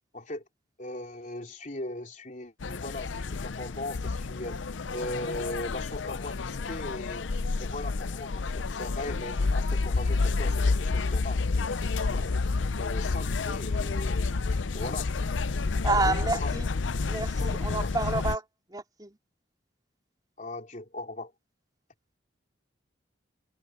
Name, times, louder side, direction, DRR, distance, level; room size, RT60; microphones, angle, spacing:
voice 1, 0.1-0.4 0.8-4.6 4.9-7.3 7.6-12.4 12.8-14.2 14.7-15.1 16.0-16.5 17.7-18.2 20.4-21.3, left 1 dB, 45° left, 3.7 m, -39 dB
sound 1, 2.6-18.4, left 3 dB, 85° left, 0.7 m, -29 dB
voice 2, 15.8-16.7 17.1-18.4 18.7-19.2, right 3 dB, 20° right, 4.0 m, -29 dB
head